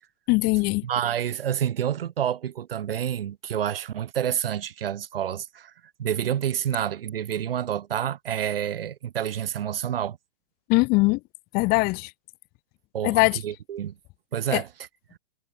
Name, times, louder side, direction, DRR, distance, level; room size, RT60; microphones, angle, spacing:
voice 1, 0.3-0.9 10.7-11.2 11.5-12.1 13.0-13.4 14.5-14.6, left 25 dB, 30° left, 3.4 m, -21 dB
voice 2, 0.8-5.7 6.0-10.2 12.9-13.9 14.3-14.7 15.1-15.2, right 10 dB, 75° right, 2.4 m, -28 dB
hypercardioid pair, 145°, 29 cm